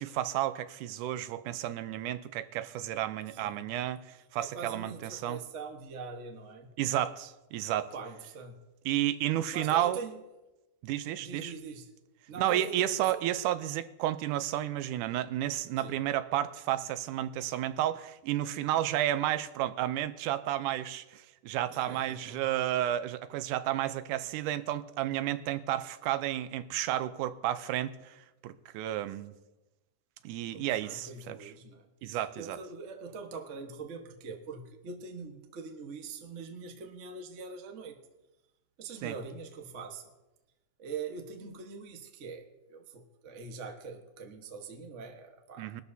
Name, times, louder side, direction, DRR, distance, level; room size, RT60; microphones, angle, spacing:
voice 1, 0.0-5.4 6.8-7.9 8.9-10.0 10.8-11.5 12.4-29.3 30.2-31.5 32.0-32.6 39.0-39.2 45.6-45.8, right 13 dB, 90° right, 2.2 m, -32 dB
voice 2, 3.3-3.7 4.4-6.7 7.9-8.6 9.5-10.1 11.2-11.9 12.3-13.2 15.8-16.0 21.7-22.4 30.5-31.8 32.4-38.0 38.8-40.1 40.8-45.8, right 4 dB, 55° right, 0.8 m, -43 dB
21.0 x 12.5 x 2.7 m
omnidirectional pair, 3.5 m